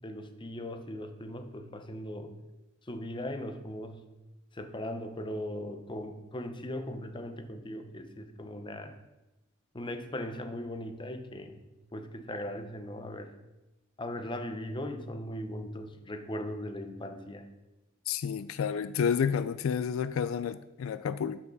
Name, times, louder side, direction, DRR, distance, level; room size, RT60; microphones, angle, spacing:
voice 1, 0.0-2.3 2.9-4.0 4.5-8.9 9.7-11.6 11.9-13.3 14.0-17.5, left 1 dB, 25° left, 7 dB, 0.8 m, -39 dB
voice 2, 18.1-21.4, left 7 dB, 75° left, 13 dB, 0.3 m, -30 dB
12.5 x 5.8 x 4.0 m, 1.0 s
head